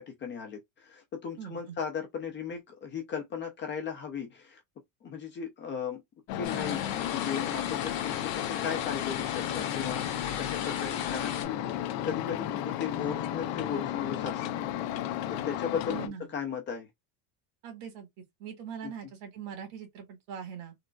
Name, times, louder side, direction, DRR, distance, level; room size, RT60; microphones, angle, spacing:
voice 1, 0.0-4.6 5.0-6.0 6.3-14.6 15.3-16.9 18.8-18.9, left 7 dB, 25° left, 0.4 m, -37 dB
voice 2, 1.4-1.8 15.9-16.3 17.6-18.1 18.4-20.7, right 8 dB, 80° right, 1.7 m, -41 dB
sound 1, 6.3-16.1, left 11 dB, 75° left, 0.7 m, -33 dB
sound 2, 6.4-11.4, left 9 dB, 45° left, 1.2 m, -37 dB
3.8 x 2.3 x 2.3 m
cardioid pair, 155°, 50 cm